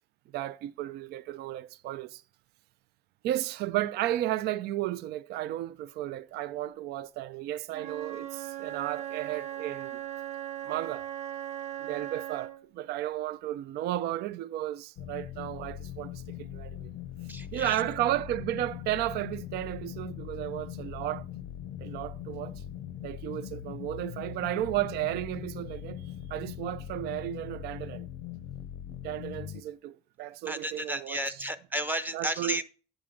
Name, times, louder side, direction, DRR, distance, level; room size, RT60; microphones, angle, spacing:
voice 1, 0.3-2.2 3.2-10.0 10.6-11.1 11.8-16.9 17.5-21.3 21.8-22.6 23.0-26.0 26.3-28.1 29.0-31.2 32.1-32.6, right 14 dB, 75° right, 0.4 m, -33 dB
Wind instrument woodwind instrument, 7.7-12.7, right 11 dB, 40° right, 0.8 m, -38 dB
sound 1, 15.0-29.6, left 11 dB, 90° left, 0.7 m, -41 dB
voice 2, 17.3-17.8 30.5-32.7, right 1 dB, 10° right, 0.6 m, -33 dB
8.6 x 7.2 x 3.7 m
cardioid pair, 110°, 17 cm